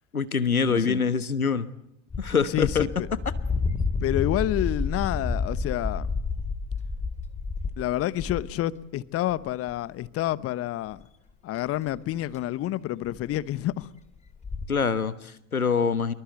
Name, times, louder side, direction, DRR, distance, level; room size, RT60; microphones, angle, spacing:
voice 1, 0.1-1.7 2.2-2.8 14.7-16.1, left 5 dB, 85° left, 1.2 m, -24 dB
voice 2, 0.7-1.0 2.5-3.1 4.0-6.1 7.8-11.0 11.4-13.9, left 14 dB, 35° left, 1.0 m, -28 dB
sound 1, 2.1-8.6 9.3-9.8 10.0-10.1 10.9-11.0 12.0-12.1 12.3-12.4 13.1-13.3 13.6-13.7 13.8-13.9 14.3-14.7, left 4 dB, 15° left, 2.3 m, -30 dB
25.5 x 23.0 x 8.1 m
figure-of-eight pair, 75°, 42 cm